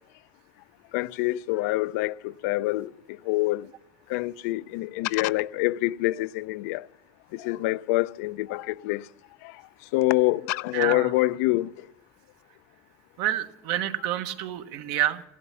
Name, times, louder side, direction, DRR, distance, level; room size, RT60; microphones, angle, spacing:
voice 1, 0.9-2.9 3.2-3.7 4.1-6.9 7.3-9.0 9.4-9.5 9.9-11.7, left 19 dB, 85° left, 0.4 m, -26 dB
voice 2, 10.7-11.1 13.2-15.2, right 11 dB, 70° right, 1.2 m, -28 dB
16.5 x 11.5 x 7.0 m
cardioid pair, 130°, 8 cm